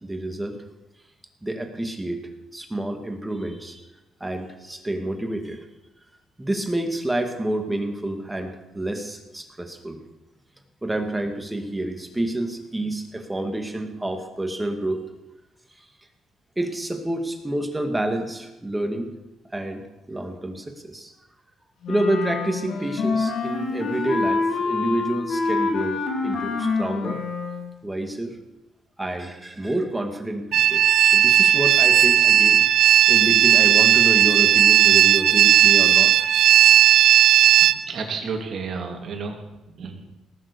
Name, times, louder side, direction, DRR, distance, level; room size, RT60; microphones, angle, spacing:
voice 1, 0.0-0.6 1.4-2.2 2.5-3.8 4.2-5.6 6.4-10.0 10.8-15.0 16.6-19.1 19.5-19.8 20.1-21.1 21.9-27.2 27.8-28.4 29.0-32.6 33.1-36.1, right 1 dB, 10° right, 5 dB, 2.1 m, -28 dB
Wind instrument woodwind instrument, 21.8-27.7, left 4 dB, 70° left, 2.9 m, -26 dB
sound 1, 30.5-37.7, right 11 dB, 75° right, 0.6 m, -15 dB
voice 2, 37.6-39.4 39.7-40.1, right 4 dB, 60° right, 3 dB, 2.9 m, -32 dB
19.0 x 7.4 x 6.9 m, 0.98 s
cardioid pair, 90°, 0 cm